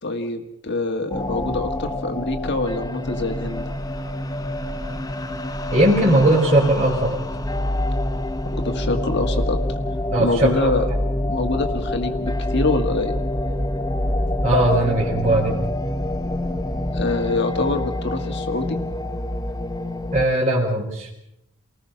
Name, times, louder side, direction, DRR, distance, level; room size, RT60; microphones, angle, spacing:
voice 1, 0.0-3.7 8.6-9.6 10.2-10.8 11.3-13.1 16.9-18.8, left 2 dB, 55° left, 5 dB, 1.6 m, -25 dB
sound 1, 1.1-20.3, left 1 dB, 15° left, 0.9 m, -26 dB
voice 2, 5.7-7.2 10.1-10.7 14.4-15.6 20.1-21.1, right 1 dB, 35° right, -5 dB, 4.3 m, -19 dB
29.0 x 19.0 x 5.7 m, 0.81 s
head